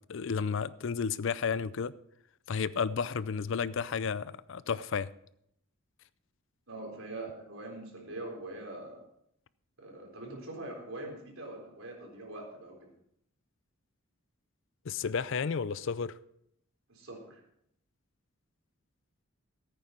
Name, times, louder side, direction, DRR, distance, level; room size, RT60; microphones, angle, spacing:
voice 1, 0.1-1.9 2.5-5.1 14.9-16.1, left 6 dB, 65° left, 0.5 m, -32 dB
voice 2, 6.7-9.0 9.8-12.9 16.9-17.4, right 2 dB, 80° right, 3.8 m, -43 dB
14.5 x 8.9 x 4.5 m
head